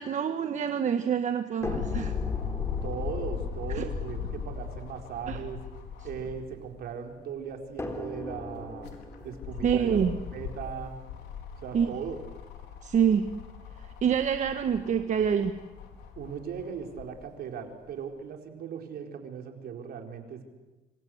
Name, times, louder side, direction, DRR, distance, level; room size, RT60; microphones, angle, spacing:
voice 1, 0.0-2.1 3.7-3.8 5.3-5.4 9.6-10.2 11.7-11.9 12.8-13.3 14.0-15.5, right 7 dB, 45° right, 8 dB, 1.5 m, -26 dB
sound 1, 1.6-6.7 7.1-7.2 8.5-17.1 17.9-18.0, left 7 dB, 80° left, 4.4 m, -38 dB
sound 2, 1.6-6.8 7.8-11.7 12.7-12.8 13.2-13.3, left 2 dB, 15° left, 3.6 m, -42 dB
voice 2, 2.8-5.6 6.0-8.9 9.2-10.0 10.3-11.0 11.6-12.2 16.2-20.4, right 7 dB, 65° right, 3 dB, 4.6 m, -38 dB
26.0 x 26.0 x 8.0 m, 1.2 s
cardioid pair, 110°, 17 cm